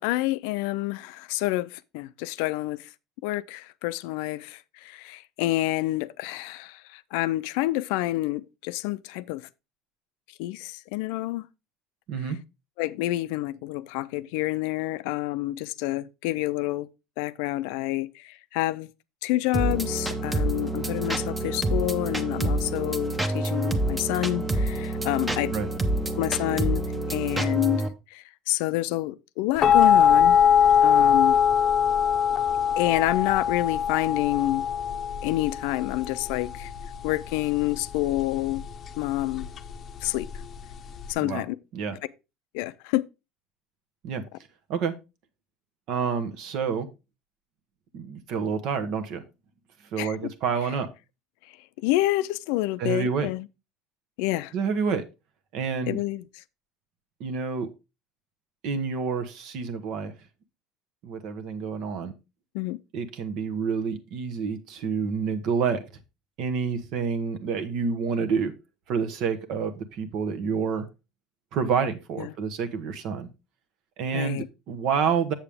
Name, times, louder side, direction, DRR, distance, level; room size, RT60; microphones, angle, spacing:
voice 1, 0.0-2.9 3.2-9.5 10.4-11.4 12.8-16.9 17.2-18.9 19.2-25.5 26.2-26.8 27.1-27.8 28.1-30.4 30.8-31.4 32.8-34.7 35.2-36.7 37.0-38.6 39.0-39.5 40.0-40.3 41.1-41.6 42.5-43.0 50.0-50.2 51.8-53.5 54.2-54.5 55.9-56.2 62.5-62.8 72.2-72.3 74.1-74.5, left 17 dB, 80° left, 0.4 m, -28 dB
sound 1, 19.5-27.9, right 1 dB, 10° right, 0.8 m, -27 dB
sound 2, 29.6-41.1, left 8 dB, 35° left, 0.7 m, -22 dB
voice 2, 45.9-46.9 47.9-49.2 49.9-50.9 52.8-53.3 54.5-55.0 55.5-56.0 57.2-57.7 58.6-60.1 61.0-62.1 62.9-65.8 66.4-68.5 68.9-70.9 71.5-73.3 74.0-75.3, right 6 dB, 60° right, 1.1 m, -28 dB
7.3 x 6.9 x 3.4 m
cardioid pair, 135°, 0 cm